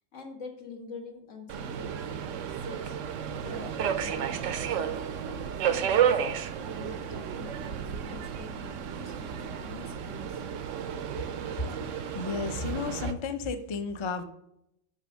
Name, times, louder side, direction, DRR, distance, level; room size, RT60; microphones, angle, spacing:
voice 1, 0.1-3.0 3.4-6.2 6.4-10.4, left 3 dB, 85° left, 2 dB, 1.8 m, -46 dB
Subway metro underground, 1.5-13.1, right 8 dB, 80° right, 1.0 m, -32 dB
voice 2, 11.2-14.2, left 4 dB, 40° left, 9 dB, 0.4 m, -33 dB
6.5 x 5.2 x 6.3 m, 0.80 s
omnidirectional pair, 1.3 m